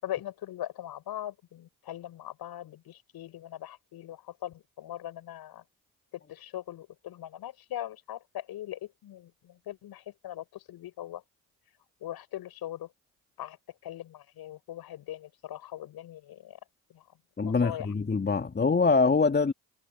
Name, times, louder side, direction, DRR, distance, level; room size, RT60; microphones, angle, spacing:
voice 1, 0.0-5.6 6.1-11.2 12.0-12.9 13.4-13.6 13.8-16.6 16.9-17.0 17.4-17.9, left 12 dB, 65° left, 7.6 m, -40 dB
voice 2, 17.4-19.5, left 4 dB, 25° left, 2.0 m, -24 dB
hypercardioid pair, 50°, 39 cm